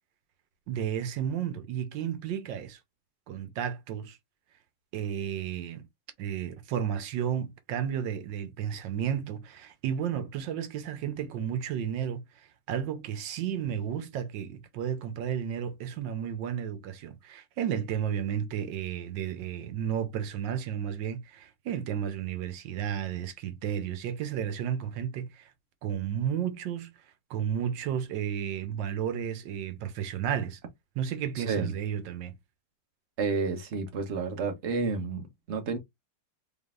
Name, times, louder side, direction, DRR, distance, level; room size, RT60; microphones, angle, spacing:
voice 1, 0.7-2.8 3.3-4.2 4.9-5.9 6.2-25.5 25.8-26.9 27.3-30.6 31.0-32.3, right 9 dB, 80° right, 1.4 m, -32 dB
voice 2, 31.4-31.7 33.2-35.8, right 4 dB, 45° right, 1.1 m, -30 dB
3.8 x 3.5 x 2.4 m
omnidirectional pair, 2.0 m